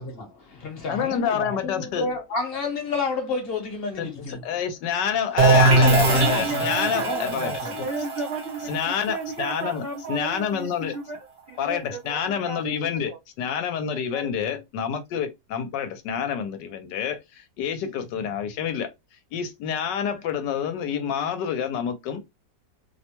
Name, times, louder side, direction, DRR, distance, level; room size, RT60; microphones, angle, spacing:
voice 1, 0.0-4.4 5.4-7.8, left 3 dB, 45° left, 0.9 m, -30 dB
voice 2, 0.9-2.1 4.0-4.1 4.4-7.5 8.7-9.8 10.1-10.9 11.6-13.1 13.4-18.9 19.3-22.2, left 8 dB, 80° left, 1.2 m, -28 dB
sound 1, 5.4-11.0, right 3 dB, 50° right, 0.8 m, -22 dB
voice 3, 6.1-13.2 13.9-14.5, right 4 dB, 85° right, 0.5 m, -34 dB
3.0 x 2.1 x 2.8 m
omnidirectional pair, 1.9 m